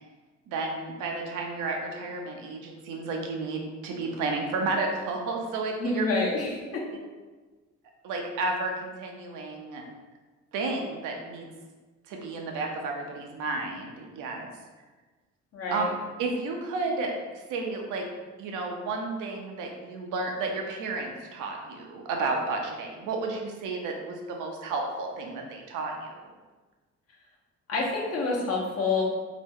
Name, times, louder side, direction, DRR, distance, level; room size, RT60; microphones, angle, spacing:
voice 1, 0.5-6.1 8.0-9.8 10.5-11.5 12.1-14.5 15.7-15.8 16.2-18.0 18.4-26.3, right 3 dB, 85° right, 1 dB, 0.6 m, -32 dB
voice 2, 5.8-6.8 15.5-15.9 27.7-29.0, left 3 dB, 50° left, -3 dB, 0.9 m, -27 dB
2.8 x 2.1 x 3.5 m, 1.3 s
cardioid pair, 90°, 30 cm